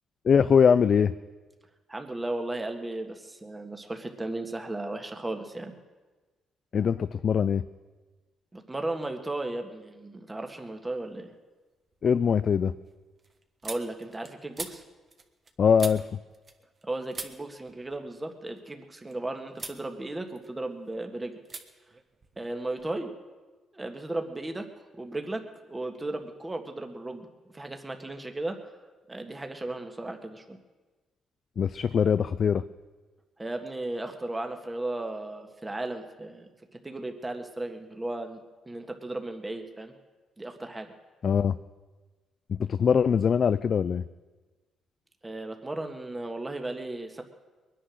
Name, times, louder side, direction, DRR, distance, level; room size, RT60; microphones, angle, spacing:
voice 1, 0.2-1.1 6.7-7.6 12.0-12.7 15.6-16.0 31.6-32.6 41.2-41.6 42.5-44.0, left 7 dB, 50° left, 13 dB, 0.4 m, -22 dB
voice 2, 1.9-5.8 8.5-11.3 13.6-14.8 16.8-21.3 22.4-23.1 23.7-24.7 24.9-25.4 25.7-27.3 27.5-28.8 29.1-30.6 33.4-36.5 36.8-39.9 40.4-40.9 45.2-47.2, right 2 dB, 15° right, 5 dB, 1.7 m, -35 dB
sound 1, 10.9-11.4 11.8-16.8 17.1-19.1 19.5-19.8 20.2-20.9 21.4-21.6 21.9-23.0, right 3 dB, 35° right, 1.5 m, -44 dB
22.0 x 10.0 x 6.4 m, 1.3 s
cardioid pair, 90°, 0 cm